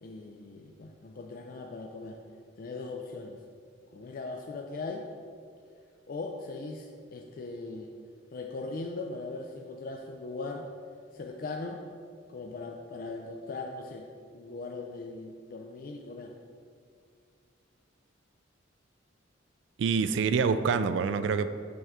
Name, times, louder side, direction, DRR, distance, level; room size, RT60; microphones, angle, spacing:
voice 1, 0.0-2.2 2.6-3.4 3.9-5.0 6.1-7.9 8.3-10.7 11.1-11.8 12.3-14.1 14.3-16.3, left 3 dB, 50° left, 2 dB, 0.4 m, -39 dB
voice 2, 19.8-21.5, right 5 dB, 70° right, 11 dB, 0.3 m, -26 dB
6.4 x 5.6 x 3.6 m, 2.2 s
head